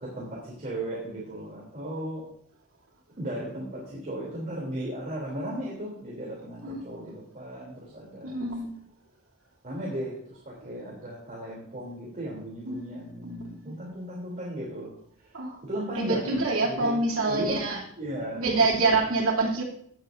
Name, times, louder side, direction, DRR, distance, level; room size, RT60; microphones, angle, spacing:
voice 1, 0.0-2.2 3.2-8.4 9.6-14.9 15.2-15.3 15.6-16.4 16.6-16.9 17.2-17.6 18.0-18.5, right 1 dB, 40° right, -5 dB, 3.2 m, -36 dB
voice 2, 8.2-8.7 12.7-13.4 13.6-13.7 15.3-15.6 15.9-17.8 18.4-19.6, right 3 dB, 65° right, -2 dB, 2.9 m, -26 dB
17.5 x 7.9 x 2.7 m, 0.65 s
head